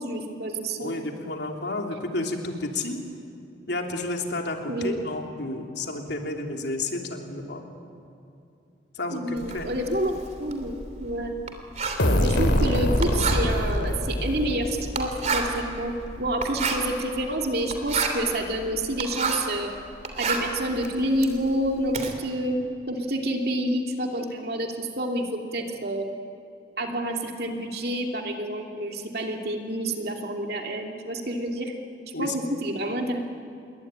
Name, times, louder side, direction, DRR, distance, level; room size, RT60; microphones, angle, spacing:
voice 1, 0.0-1.0 4.7-5.0 9.1-11.4 12.2-19.7 20.2-22.6 22.9-26.1 26.8-31.7 32.2-33.2, right 1 dB, 55° right, 2 dB, 2.7 m, -28 dB
voice 2, 0.8-3.0 3.7-7.6 8.9-9.7 32.1-32.3, left 2 dB, 65° left, 2 dB, 3.1 m, -31 dB
Writing, 9.4-19.6 19.9-22.1, right 4 dB, 40° right, 3.1 m, -31 dB
sound 1, 12.0-15.6, equal, 85° left, 3.1 m, -24 dB
27.5 x 22.0 x 10.0 m, 2.6 s
head